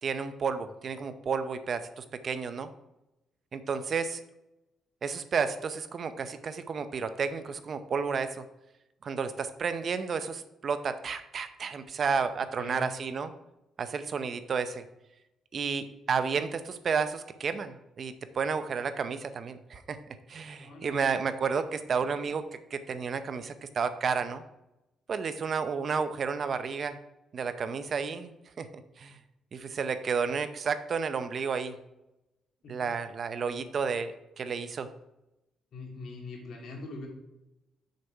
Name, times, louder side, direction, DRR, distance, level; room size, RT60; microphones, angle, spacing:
voice 1, 0.0-2.7 3.5-4.2 5.0-8.4 9.0-13.3 13.8-14.8 15.5-20.0 20.3-22.4 22.7-24.4 25.1-27.0 27.3-28.7 29.0-29.2 29.5-31.8 32.7-34.9, right 5 dB, 50° right, 11 dB, 0.7 m, -31 dB
voice 2, 12.6-12.9 20.6-21.0 32.6-32.9 35.7-37.1, left 3 dB, 65° left, 0 dB, 2.5 m, -42 dB
7.0 x 6.6 x 4.6 m, 0.92 s
cardioid pair, 90°, 0 cm